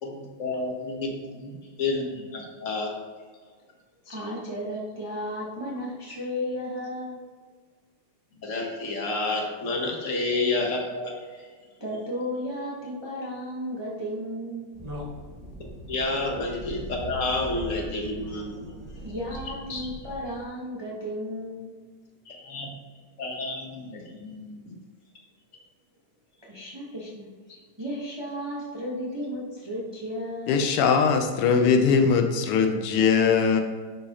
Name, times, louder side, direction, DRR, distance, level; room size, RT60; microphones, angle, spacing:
voice 1, 0.0-2.9 4.1-4.2 8.4-11.2 15.9-18.7 19.7-19.8 22.3-22.7 23.2-24.7, left 2 dB, 45° left, 0 dB, 1.3 m, -30 dB
voice 2, 4.1-7.2 11.3-11.4 11.8-14.7 19.0-21.7 24.1-24.2 26.4-27.3 27.8-30.6, equal, 15° right, -5 dB, 0.9 m, -34 dB
sound 1, 14.7-20.4, equal, 75° right, 0.3 m, -40 dB
voice 3, 30.5-33.6, left 6 dB, 90° left, 6 dB, 1.7 m, -21 dB
11.0 x 4.8 x 3.0 m, 1.5 s
omnidirectional pair, 2.4 m